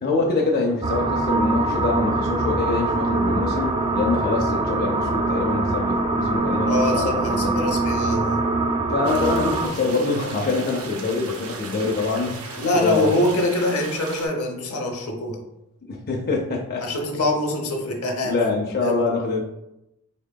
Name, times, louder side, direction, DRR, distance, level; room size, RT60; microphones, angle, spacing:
voice 1, 0.0-7.7 8.9-13.1 15.8-16.8 18.2-19.4, left 3 dB, 45° left, 0 dB, 0.5 m, -25 dB
sound 1, 0.8-9.7, right 2 dB, 25° right, 0.4 m, -23 dB
voice 2, 6.7-8.4 12.6-15.4 16.8-18.3 18.8-19.0, left 1 dB, 80° left, 2 dB, 0.7 m, -24 dB
sound 2, 9.0-14.3, right 4 dB, 80° right, 0.6 m, -37 dB
3.6 x 3.6 x 2.2 m, 0.86 s
head